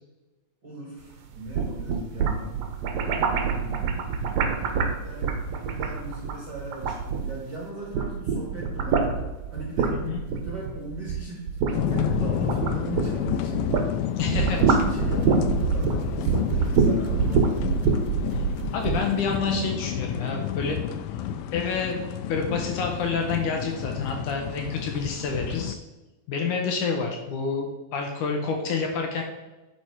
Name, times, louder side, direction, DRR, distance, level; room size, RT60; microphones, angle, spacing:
voice 1, 0.6-2.5 3.5-4.2 5.0-9.0 9.5-13.9 14.2-17.6 21.3-21.5 26.4-26.7, right 2 dB, 50° right, -4 dB, 1.3 m, -38 dB
sound 1, 1.3-7.6 7.8-13.9 14.2-19.0, right 5 dB, 70° right, 1.8 m, -25 dB
voice 2, 9.9-10.2 14.2-14.6 18.3-18.4 18.7-20.8 21.5-22.0 22.3-25.8 26.3-29.2, left 5 dB, 70° left, 2 dB, 2.2 m, -28 dB
sound 2, 11.7-25.8, left 10 dB, 85° left, 2.4 m, -30 dB
10.0 x 4.5 x 4.6 m, 1.1 s
omnidirectional pair, 4.2 m